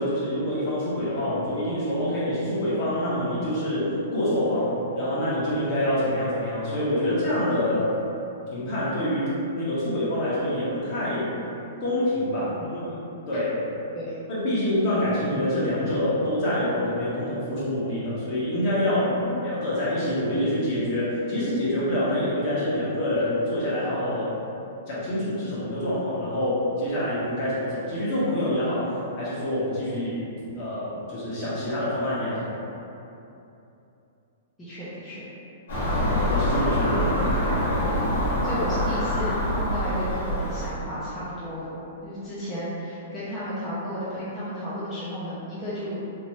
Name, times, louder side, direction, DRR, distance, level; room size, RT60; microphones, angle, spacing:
voice 1, 0.0-7.9 8.5-11.3 11.8-13.5 14.3-19.2 19.4-24.4 24.9-30.2 30.5-32.5 35.9-37.9, left 1 dB, 40° left, -10 dB, 1.2 m, -26 dB
voice 2, 12.4-12.7 13.9-14.1 19.1-19.4 34.6-35.3 38.4-46.0, equal, 10° left, -13 dB, 0.7 m, -33 dB
Car passing by / Engine, 35.7-40.7, equal, 80° left, 1.2 m, -25 dB
3.0 x 2.6 x 3.1 m, 2.8 s
hypercardioid pair, 140°, 0 cm